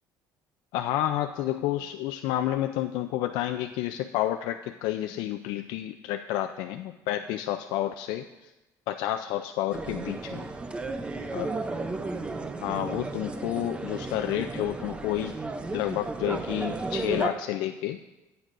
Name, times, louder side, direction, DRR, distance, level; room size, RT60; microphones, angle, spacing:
voice 1, 0.7-8.3 8.9-10.5 11.3-11.5 12.6-15.3 15.7-18.0, left 13 dB, 85° left, 7 dB, 0.4 m, -30 dB
sound 1, 9.7-17.3, right 3 dB, 15° right, 0.5 m, -34 dB
15.0 x 9.1 x 2.5 m, 1.0 s
cardioid pair, 150°, 7 cm